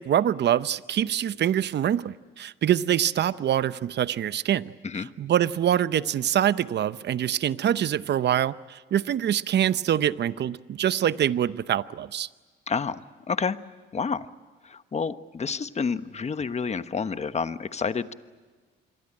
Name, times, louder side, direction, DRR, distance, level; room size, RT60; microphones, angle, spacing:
voice 1, 0.0-4.7 5.2-12.3, right 10 dB, 60° right, 0.8 m, -25 dB
voice 2, 12.7-13.0 13.3-13.6 13.9-14.3 14.6-18.1, left 5 dB, 35° left, 1.2 m, -29 dB
26.5 x 23.0 x 8.8 m
cardioid pair, 90°, 20 cm